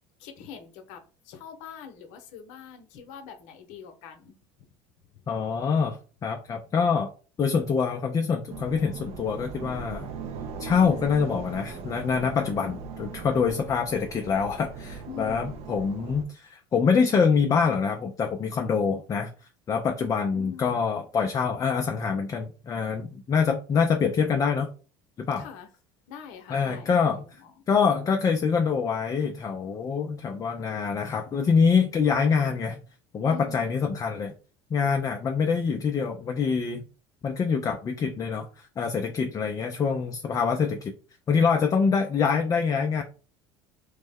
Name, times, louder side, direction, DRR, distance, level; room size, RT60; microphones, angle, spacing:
voice 1, 0.2-4.7 5.0-5.2 15.1-15.7 20.1-20.8 25.4-25.7 26.1-27.6 33.3-33.8, left 7 dB, 70° left, 0.8 m, -44 dB
voice 2, 5.3-7.1 7.4-10.1 10.6-19.3 19.7-24.7 25.2-25.5 26.5-27.2 27.7-32.8 33.1-34.3 34.7-36.8 37.2-40.9 41.3-43.0, left 5 dB, 25° left, 0.4 m, -25 dB
sound 1, 8.5-16.2, right 5 dB, 50° right, 0.6 m, -39 dB
3.1 x 2.1 x 3.4 m
supercardioid pair, 105°, 13 cm